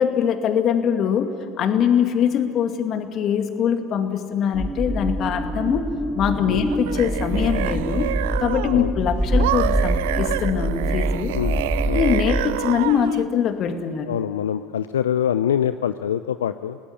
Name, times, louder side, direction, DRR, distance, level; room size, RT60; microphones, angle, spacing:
voice 1, 0.0-5.9 6.1-8.1 8.4-11.4 11.9-14.1, left 8 dB, 45° left, 6 dB, 2.4 m, -23 dB
sound 1, 4.5-12.5, right 1 dB, 5° right, 2.5 m, -25 dB
sound 2, 6.7-8.9 9.4-13.3, right 15 dB, 70° right, 0.6 m, -28 dB
voice 2, 11.3-12.0 14.1-16.8, left 9 dB, 80° left, 12 dB, 0.5 m, -24 dB
28.0 x 18.0 x 9.8 m, 2.7 s
hypercardioid pair, 75°, 0 cm